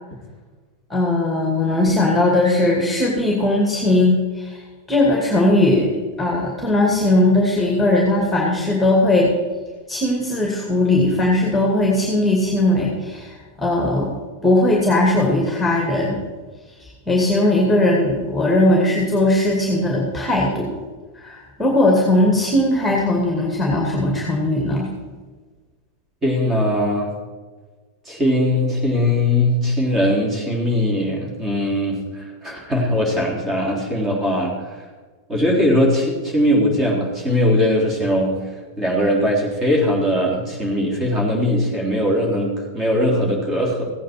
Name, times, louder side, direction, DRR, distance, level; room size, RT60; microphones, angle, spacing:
voice 1, 0.9-4.6 4.9-5.9 6.2-9.3 9.9-14.1 14.4-16.2 16.8-20.7 21.1-24.9, left 1 dB, 5° left, -1 dB, 2.3 m, -18 dB
voice 2, 26.2-27.1 28.1-34.7 35.3-38.4 38.8-43.9, left 1 dB, 20° right, -3 dB, 3.7 m, -20 dB
16.0 x 8.9 x 4.6 m, 1.4 s
figure-of-eight pair, 90°, 0 cm